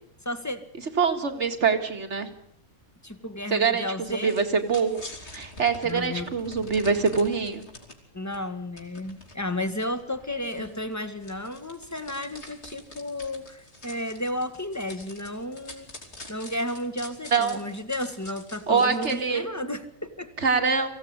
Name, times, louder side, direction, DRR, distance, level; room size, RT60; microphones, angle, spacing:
voice 1, 0.2-0.6 3.0-4.4 5.8-6.3 8.1-15.9 16.3-20.3, left 1 dB, 15° left, 10 dB, 1.7 m, -33 dB
voice 2, 1.0-2.3 3.5-5.0 5.3-7.6 17.3-17.6 18.7-19.5 20.4-20.9, right 5 dB, 60° right, 7 dB, 2.4 m, -24 dB
sound 1, 4.1-8.0 8.3-8.4 8.8-19.2, left 2 dB, 55° left, 3.8 m, -46 dB
24.0 x 16.0 x 9.7 m, 0.75 s
omnidirectional pair, 1.4 m